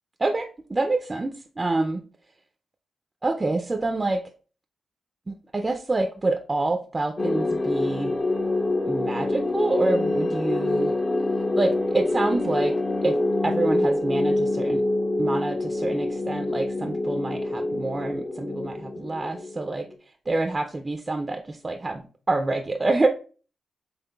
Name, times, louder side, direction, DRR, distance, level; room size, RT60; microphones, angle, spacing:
voice 1, 0.2-2.0 3.2-4.2 5.3-8.2 8.9-11.0 11.6-12.7 13.0-13.2 13.4-14.8 15.2-19.9 20.3-23.1, right 2 dB, 30° right, 6 dB, 0.4 m, -27 dB
sound 1, 7.2-20.0, left 2 dB, 35° left, 0.5 m, -26 dB
5.5 x 3.5 x 2.3 m, 0.39 s
cardioid pair, 70°, 0 cm